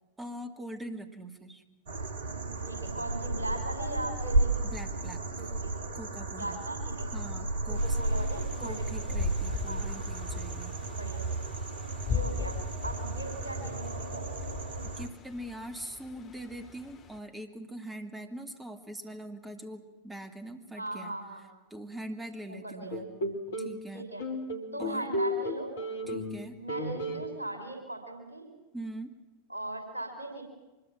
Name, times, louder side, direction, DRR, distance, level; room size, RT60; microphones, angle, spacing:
voice 1, 0.2-1.6 4.7-5.3 5.9-6.6 7.1-8.0 8.6-10.8 15.0-21.1 21.7-23.1 23.6-24.1 24.8-25.1 26.1-26.6 28.7-29.1, right 1 dB, 10° right, 7 dB, 2.5 m, -42 dB
sound 1, 1.9-15.1, right 2 dB, 60° right, 1.9 m, -33 dB
voice 2, 2.7-4.6 5.4-5.7 6.4-7.1 7.7-9.2 9.7-9.8 10.9-11.2 12.0-14.3 20.8-21.4 22.5-23.1 23.9-24.2 24.7-25.7 26.6-28.5 29.5-30.4, right 2 dB, 75° right, 5 dB, 5.9 m, -39 dB
sound 2, 7.8-17.2, left 6 dB, 30° left, 2.3 m, -40 dB
sound 3, 22.9-23.8 24.2-26.4 26.7-27.3, left 1 dB, 60° left, 3.1 m, -33 dB
24.5 x 21.5 x 7.5 m, 1.1 s
figure-of-eight pair, 90°, 0 cm